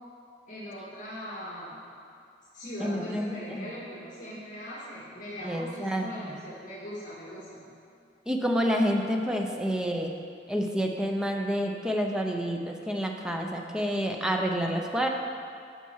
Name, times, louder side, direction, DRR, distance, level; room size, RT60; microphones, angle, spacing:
voice 1, 0.5-1.9 2.5-7.7, equal, 45° left, -9 dB, 2.1 m, -40 dB
voice 2, 2.8-3.7 5.4-6.4 8.3-10.1 10.5-15.1, equal, 5° right, 1 dB, 0.7 m, -29 dB
12.5 x 5.8 x 4.7 m, 2.4 s
head